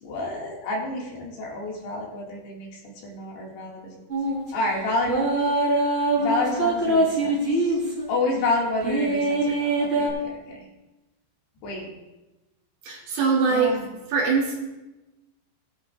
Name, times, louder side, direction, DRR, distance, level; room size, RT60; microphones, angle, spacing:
voice 1, 0.0-3.9 4.5-5.1 6.2-7.8 8.1-10.6 11.6-11.9 13.5-13.8, left 2 dB, 65° left, -3 dB, 4.0 m, -29 dB
sound 1, 4.1-4.4 5.1-8.0 8.8-10.1, right 2 dB, 15° right, 3.8 m, -23 dB
voice 2, 12.8-13.8 14.1-14.6, right 5 dB, 60° right, -4 dB, 4.1 m, -22 dB
21.0 x 11.0 x 2.5 m, 1.1 s
omnidirectional pair, 5.4 m